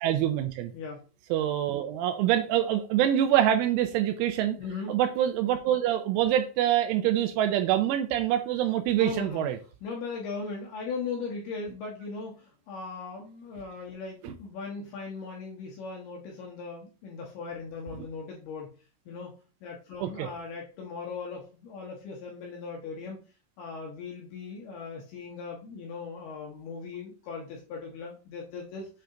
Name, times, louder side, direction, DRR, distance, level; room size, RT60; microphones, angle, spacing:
voice 1, 0.0-0.7 1.3-4.6 4.9-9.6 14.2-14.3 18.0-18.1 20.0-20.3, right 11 dB, 85° right, 7 dB, 2.9 m, -25 dB
voice 2, 4.6-5.0 9.0-9.5 9.8-18.7 19.1-19.3 19.6-23.2 23.6-28.9, left 4 dB, 70° left, -1 dB, 2.5 m, -38 dB
7.7 x 3.4 x 3.8 m, 0.35 s
omnidirectional pair, 5.9 m